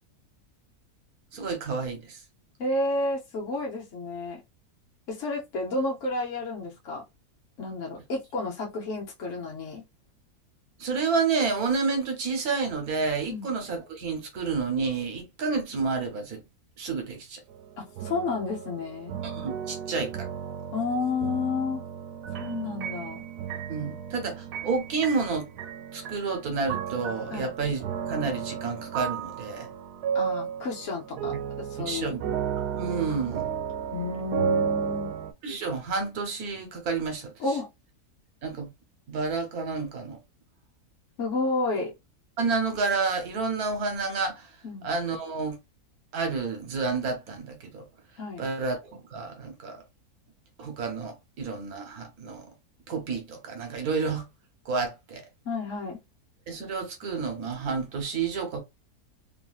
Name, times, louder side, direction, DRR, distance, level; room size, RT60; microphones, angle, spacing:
voice 1, 1.3-2.2 10.8-16.4 16.8-17.4 19.2-20.3 23.7-25.5 25.9-27.8 28.1-29.7 31.8-32.3 32.7-33.5 35.4-37.3 38.4-38.7 39.1-40.2 42.4-44.5 44.8-45.6 46.1-47.8 48.4-48.8 49.1-49.8 50.6-52.5 52.9-54.3 54.7-55.3 56.5-58.6, right 4 dB, 70° right, 1.4 m, -30 dB
voice 2, 2.6-4.4 5.1-7.0 7.6-9.8 13.3-13.5 17.8-19.2 20.7-21.8 22.4-23.2 27.3-27.5 30.1-32.2 33.9-35.1 37.4-37.7 41.2-41.9 44.6-44.9 48.2-48.5 55.4-56.0, left 3 dB, 55° left, 1.0 m, -31 dB
sound 1, 17.5-35.3, right 8 dB, 90° right, 1.2 m, -33 dB
3.0 x 2.6 x 2.3 m
omnidirectional pair, 1.7 m